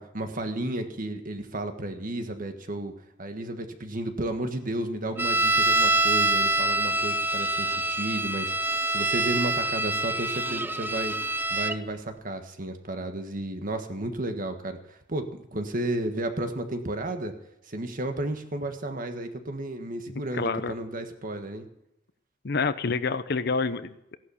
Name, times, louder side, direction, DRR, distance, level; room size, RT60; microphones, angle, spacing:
voice 1, 0.0-2.9 3.2-11.1 11.5-17.3 17.7-21.7, right 1 dB, 45° right, 7 dB, 1.6 m, -33 dB
sound 1, 5.2-11.8, right 2 dB, 10° right, 0.6 m, -25 dB
voice 2, 20.3-20.7 22.4-24.2, left 4 dB, 60° left, 13 dB, 0.8 m, -28 dB
15.5 x 11.5 x 7.1 m, 0.84 s
head